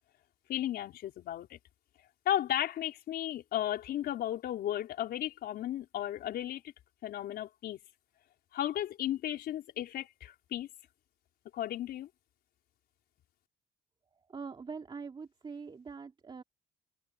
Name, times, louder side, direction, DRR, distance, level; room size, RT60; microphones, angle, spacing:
voice 1, 0.5-1.6 2.2-6.6 7.0-7.8 8.5-10.7 11.5-12.1, left 12 dB, 65° left, 4.5 m, -34 dB
voice 2, 14.3-16.4, right 5 dB, 30° right, 2.6 m, -43 dB
cardioid pair, 110°, 17 cm